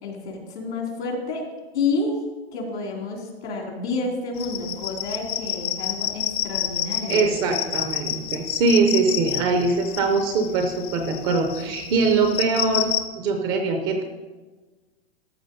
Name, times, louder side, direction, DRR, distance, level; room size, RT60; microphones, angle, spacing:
voice 1, 0.0-1.4 1.7-2.2 2.5-7.7, left 3 dB, 80° left, 1 dB, 3.3 m, -29 dB
sound 1, 4.4-13.0, left 12 dB, 50° left, 0.9 m, -29 dB
voice 2, 7.1-12.9 13.1-14.0, right 4 dB, 15° right, 5 dB, 0.4 m, -22 dB
13.5 x 5.7 x 5.3 m, 1.3 s
hypercardioid pair, 160°, 32 cm